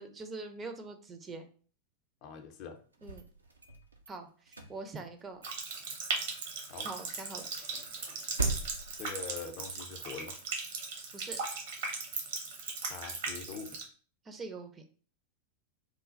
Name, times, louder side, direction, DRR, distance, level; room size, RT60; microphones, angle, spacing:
voice 1, 0.0-1.5 3.0-3.3 4.1-5.4 6.8-7.5 11.1-11.4 14.2-14.8, right 3 dB, 20° right, 6 dB, 0.5 m, -43 dB
voice 2, 2.2-2.8 6.7-6.9 9.0-10.4 12.9-13.8, left 6 dB, 40° left, 6 dB, 0.5 m, -43 dB
sound 1, 2.9-4.1 4.5-5.6 5.9-6.0 6.3-6.5 6.8-6.9 7.2-9.8, right 3 dB, 80° right, 0.5 m, -39 dB
Water tap faucet, 5.4-13.8, right 4 dB, 55° right, 0.9 m, -38 dB
3.1 x 2.2 x 3.7 m, 0.41 s
figure-of-eight pair, 90°, 0 cm